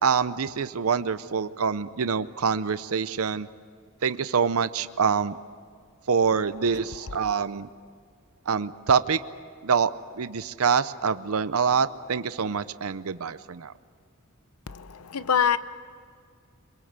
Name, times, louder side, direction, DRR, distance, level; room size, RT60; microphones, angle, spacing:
voice 1, 0.0-3.5 4.0-5.4 6.1-7.7 8.5-9.2 9.6-9.9 10.2-13.7, right 6 dB, 80° right, 13 dB, 0.6 m, -25 dB
voice 2, 14.7-15.6, left 7 dB, 90° left, 14 dB, 0.7 m, -24 dB
25.5 x 22.0 x 8.1 m, 2.1 s
head